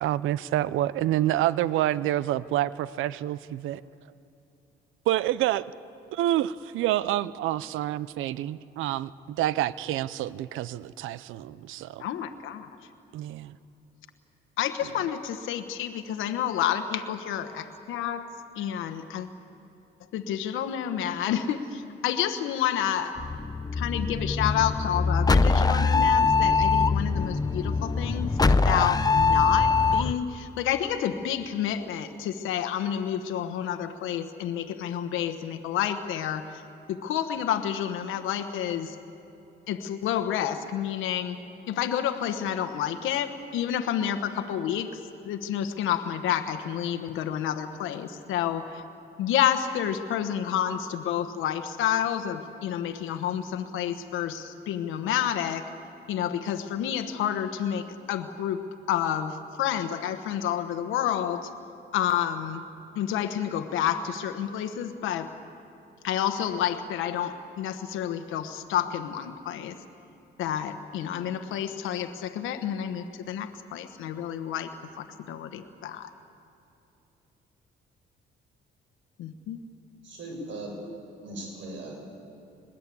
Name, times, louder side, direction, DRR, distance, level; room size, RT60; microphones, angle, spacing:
voice 1, 0.0-3.8 5.1-5.7 6.1-12.0 13.1-13.6 14.8-14.9, right 13 dB, 90° right, 17 dB, 0.6 m, -28 dB
voice 2, 12.0-12.7 14.6-18.3 18.6-19.3 20.1-21.6 22.0-23.1 23.8-36.4 36.9-38.9 39.7-41.4 41.7-44.9 45.2-48.7 49.2-55.7 56.1-57.8 58.1-58.6 58.9-61.5 61.9-62.6 63.0-65.3 66.0-69.7 70.4-74.7 75.3-76.1 79.2-79.6, left 10 dB, 90° left, 8 dB, 1.2 m, -29 dB
sound 1, 23.2-30.1, left 4 dB, 20° left, 0.7 m, -23 dB
voice 3, 80.0-80.7 81.2-81.9, right 2 dB, 70° right, 0 dB, 8.0 m, -38 dB
22.0 x 21.0 x 8.5 m, 2.9 s
cardioid pair, 90°, 20 cm